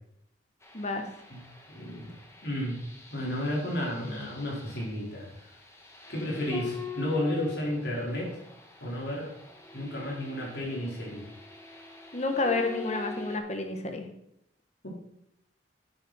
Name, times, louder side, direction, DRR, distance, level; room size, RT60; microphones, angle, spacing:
sound 1, 0.6-13.4, left 4 dB, 15° left, 1.6 m, -45 dB
voice 1, 0.7-1.1 12.1-14.1, left 3 dB, 35° left, 5 dB, 1.4 m, -30 dB
voice 2, 1.7-2.1 2.4-2.8 3.1-5.3 6.1-8.4 8.8-9.3 9.7-11.2 14.8-14.9, left 1 dB, 60° left, -3 dB, 4.4 m, -32 dB
11.0 x 8.7 x 4.3 m, 0.77 s
head